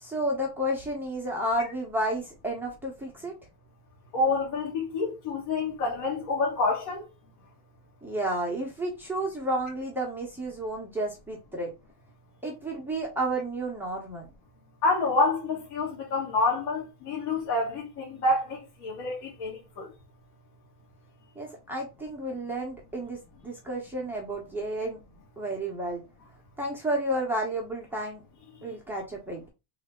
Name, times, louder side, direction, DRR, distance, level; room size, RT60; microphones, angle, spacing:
voice 1, 0.0-3.3 8.0-11.7 12.4-14.3 21.4-25.0 25.4-26.0 26.6-28.2 28.6-29.5, right 1 dB, 5° right, 0.9 m, -31 dB
voice 2, 4.1-7.1 14.8-19.9, left 3 dB, 70° left, 1.7 m, -28 dB
3.5 x 2.8 x 3.6 m
cardioid pair, 145°, 46 cm